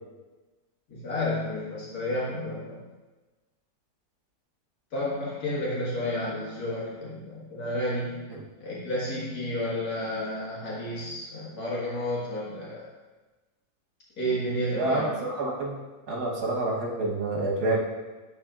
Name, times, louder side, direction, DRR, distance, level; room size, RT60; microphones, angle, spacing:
voice 1, 0.9-2.8 4.9-8.2 8.6-12.8 14.2-15.0, left 1 dB, 70° left, -6 dB, 2.2 m, -31 dB
voice 2, 14.8-15.8 16.1-17.8, right 2 dB, 80° right, -2 dB, 1.8 m, -28 dB
11.5 x 4.1 x 2.5 m, 1.2 s
omnidirectional pair, 1.7 m